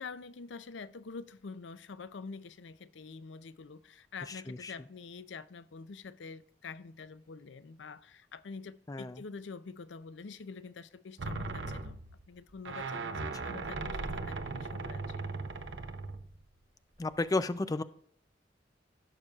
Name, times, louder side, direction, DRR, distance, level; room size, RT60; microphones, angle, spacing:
voice 1, 0.0-12.0 12.3-15.2, left 4 dB, 85° left, 0.5 m, -46 dB
voice 2, 4.3-4.7 8.9-9.2 17.0-17.8, left 2 dB, 20° left, 0.4 m, -33 dB
sound 1, 11.2-16.4 17.1-17.2, right 3 dB, 80° right, 0.8 m, -38 dB
16.5 x 6.7 x 2.4 m
head